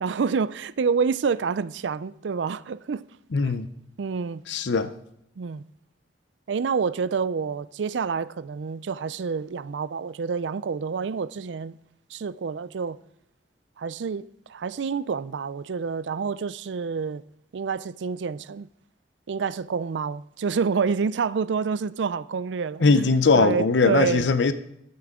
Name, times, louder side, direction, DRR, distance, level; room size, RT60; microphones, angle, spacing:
voice 1, 0.0-3.0 3.4-3.5 4.0-4.4 5.4-5.7 6.5-11.8 12.1-13.0 13.8-17.2 17.5-18.7 19.3-22.8 23.3-24.3, right 5 dB, 90° right, 0.4 m, -28 dB
voice 2, 3.3-3.7 4.5-4.9 22.8-24.5, left 4 dB, 80° left, 0.6 m, -20 dB
14.0 x 12.0 x 3.7 m
head